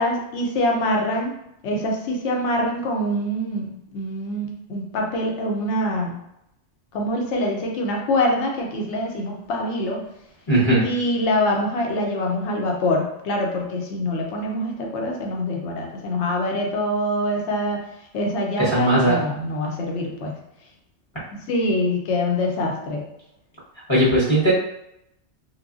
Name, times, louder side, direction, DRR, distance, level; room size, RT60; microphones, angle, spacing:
voice 1, 0.0-1.3 1.6-6.2 6.9-10.0 10.8-17.8 18.1-20.3 21.3-23.0, left 1 dB, 80° left, 0 dB, 0.9 m, -24 dB
voice 2, 10.5-10.8 18.6-19.1 23.9-24.5, right 1 dB, 30° left, -8 dB, 0.7 m, -18 dB
3.1 x 2.2 x 2.3 m, 0.81 s
omnidirectional pair, 1.2 m